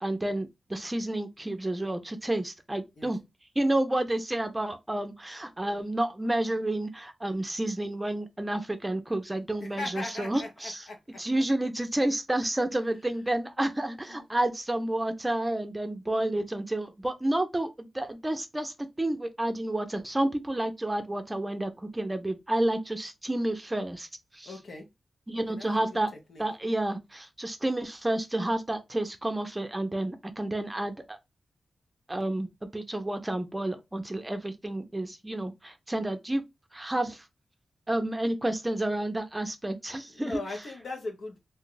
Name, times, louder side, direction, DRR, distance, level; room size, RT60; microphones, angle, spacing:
voice 1, 0.0-3.2 3.6-10.8 11.2-24.1 24.3-24.5 25.3-26.1 26.4-31.2 32.1-36.4 36.7-37.3 37.9-40.4, right 1 dB, 15° right, 0.6 m, -30 dB
voice 2, 9.6-11.2 14.1-14.3 24.4-24.9 25.5-25.8 26.3-26.4 40.1-41.4, left 3 dB, 75° left, 1.1 m, -39 dB
2.7 x 2.3 x 3.8 m
wide cardioid pair, 85°, 0 cm